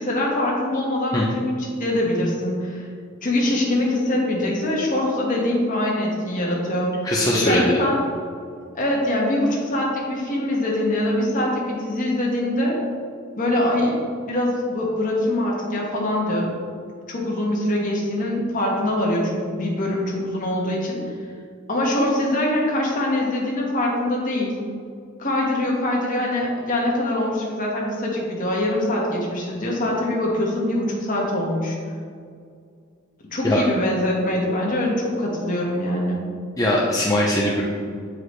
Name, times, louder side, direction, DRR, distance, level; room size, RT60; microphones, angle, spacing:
voice 1, 0.0-2.9 3.2-6.9 7.3-8.0 8.7-12.8 13.4-14.0 14.3-16.5 17.1-21.0 21.7-24.6 25.2-31.8 33.3-36.3, left 1 dB, 40° left, -3 dB, 1.4 m, -23 dB
voice 2, 7.0-7.8 33.4-33.6 36.6-37.6, left 1 dB, 15° left, -5 dB, 0.6 m, -20 dB
7.8 x 4.8 x 3.2 m, 2.2 s
head